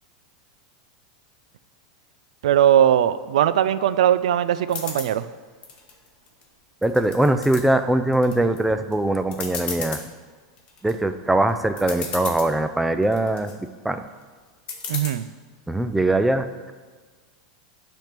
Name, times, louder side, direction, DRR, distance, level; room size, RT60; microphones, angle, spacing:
voice 1, 2.4-5.3 14.9-15.3, right 10 dB, 85° right, 14 dB, 0.3 m, -19 dB
sound 1, 4.7-5.1 5.6-6.4 6.8-7.6 8.1-8.6 8.9-9.0 9.3-10.0 10.6-10.9 11.5-11.6 11.8-12.5 13.0-13.5 14.7-15.1, left 5 dB, 30° left, 1.1 m, -33 dB
voice 2, 6.8-10.0 10.8-14.0 15.7-16.7, right 1 dB, 5° right, 9 dB, 0.3 m, -22 dB
9.0 x 3.5 x 5.8 m, 1.5 s
supercardioid pair, 145°, 4 cm